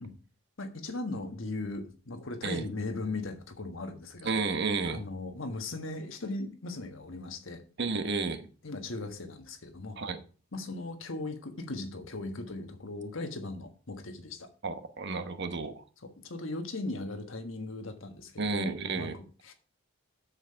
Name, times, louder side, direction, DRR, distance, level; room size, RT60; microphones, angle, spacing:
voice 1, 0.6-4.3 4.8-7.6 8.6-10.0 10.5-14.5 16.0-19.5, left 2 dB, 70° left, 6 dB, 1.5 m, -38 dB
voice 2, 4.2-5.0 7.8-8.5 10.0-10.2 14.6-15.8 18.4-19.1, right 4 dB, 55° right, 9 dB, 1.1 m, -32 dB
7.8 x 6.8 x 5.6 m, 0.38 s
head